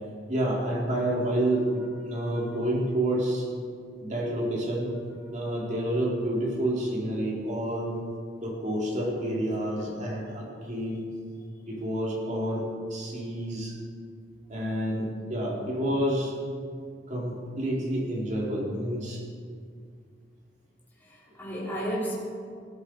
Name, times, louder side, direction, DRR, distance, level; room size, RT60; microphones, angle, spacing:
voice 1, 0.3-3.5 4.0-4.9 5.3-7.9 8.4-11.0 11.7-13.7 14.5-16.3 17.1-19.2, right 1 dB, 45° right, -3 dB, 4.3 m, -29 dB
voice 2, 2.1-2.6 9.8-9.9 21.1-22.1, equal, 10° left, -7 dB, 4.1 m, -34 dB
19.5 x 13.0 x 4.9 m, 2.1 s
head